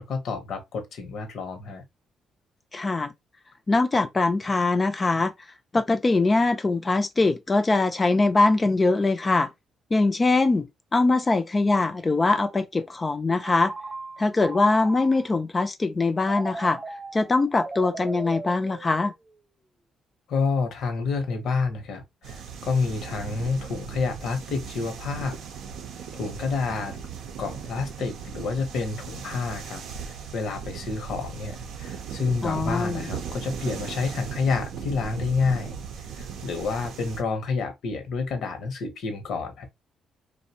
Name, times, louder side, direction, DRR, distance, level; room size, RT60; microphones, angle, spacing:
voice 1, 0.0-1.8 20.3-25.4 26.1-27.0 27.4-35.8 36.2-39.7, left 4 dB, 70° left, 0.7 m, -29 dB
voice 2, 2.7-3.1 3.7-5.3 5.7-9.5 9.9-10.7 10.9-13.7 14.2-16.8 17.1-19.1 32.4-33.1, left 3 dB, 25° left, 0.3 m, -22 dB
Telephone, 13.4-15.4 16.2-19.3, right 2 dB, 25° right, 0.8 m, -38 dB
sound 1, 22.2-37.2, right 7 dB, 80° right, 0.5 m, -37 dB
2.5 x 2.0 x 2.7 m
cardioid pair, 90°, 0 cm